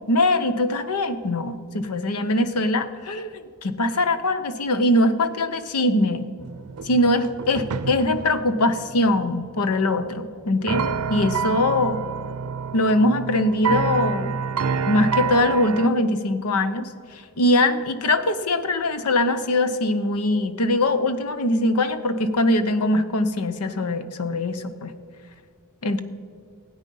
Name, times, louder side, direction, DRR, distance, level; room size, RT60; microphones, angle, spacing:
voice 1, 0.1-3.3 3.6-6.3 6.8-12.0 12.7-14.3 14.9-24.9 25.8-26.0, left 1 dB, 85° left, 11 dB, 0.9 m, -22 dB
sound 1, 6.4-15.9, right 6 dB, 90° right, 0.6 m, -28 dB
16.5 x 8.9 x 5.5 m, 2.1 s
head